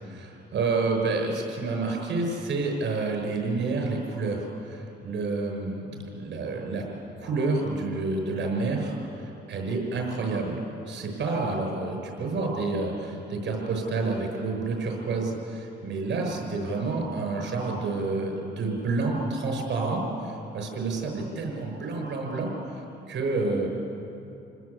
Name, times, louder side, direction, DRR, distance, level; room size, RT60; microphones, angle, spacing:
voice 1, 0.0-5.9 6.2-6.9 7.2-22.5 23.1-23.7, right 3 dB, 65° right, 2 dB, 6.3 m, -29 dB
28.5 x 20.0 x 8.4 m, 2.8 s
cardioid pair, 90°, 20 cm